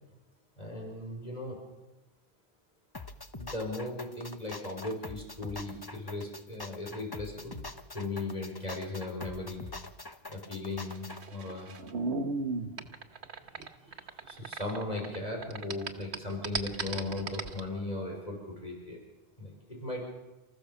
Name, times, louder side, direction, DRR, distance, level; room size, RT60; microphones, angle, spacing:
voice 1, 0.6-1.6 3.3-7.6 7.9-9.7 10.3-11.7 13.5-13.6 14.0-19.0 19.4-20.0, left 2 dB, 40° left, -1 dB, 5.0 m, -37 dB
sound 1, 2.9-11.2, left 3 dB, 20° left, 1.0 m, -44 dB
sound 2, 10.8-15.2 15.4-17.6, right 3 dB, 80° right, 1.5 m, -35 dB
29.5 x 15.0 x 7.0 m, 1.1 s
omnidirectional pair, 1.1 m